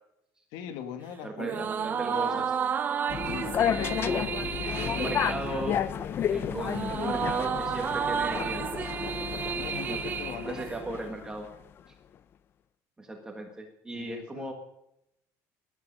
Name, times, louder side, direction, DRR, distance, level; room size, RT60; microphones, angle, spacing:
voice 1, 0.5-2.4 3.2-5.4 9.5-10.7 13.9-14.5, left 9 dB, 80° left, 9 dB, 1.8 m, -41 dB
voice 2, 1.2-2.4 4.0-4.3 4.8-5.8 6.3-8.9 9.9-10.0 10.4-11.5 13.0-14.5, right 2 dB, 10° right, 2 dB, 1.5 m, -37 dB
sound 1, 1.4-11.1, right 7 dB, 25° right, 0.6 m, -32 dB
sound 2, 3.1-11.4, left 9 dB, 30° left, 0.5 m, -32 dB
17.5 x 11.5 x 6.7 m, 0.83 s
cardioid pair, 175°, 7 cm